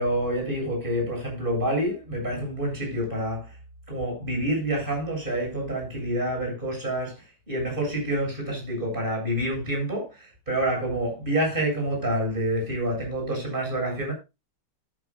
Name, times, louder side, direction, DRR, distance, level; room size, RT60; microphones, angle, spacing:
voice 1, 0.0-3.5 3.9-14.1, right 1 dB, 25° right, 7.9 m, -28 dB
18.5 x 8.8 x 2.4 m
omnidirectional pair, 2.1 m